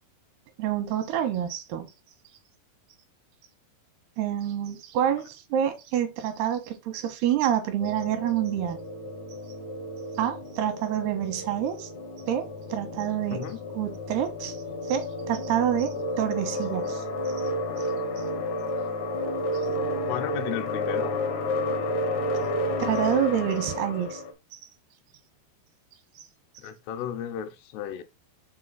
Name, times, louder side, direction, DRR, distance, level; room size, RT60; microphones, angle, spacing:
voice 1, 0.6-1.9 4.2-8.8 10.2-11.9 12.3-13.5 13.7-14.6 14.9-17.0 22.8-24.2 24.5-24.6, right 10 dB, 85° right, 3.0 m, -27 dB
sound 1, 7.8-24.3, left 1 dB, 70° left, 1.8 m, -31 dB
voice 2, 13.3-13.6 19.9-21.1 26.6-28.0, left 9 dB, 85° left, 2.9 m, -34 dB
6.9 x 2.5 x 5.5 m
omnidirectional pair, 4.6 m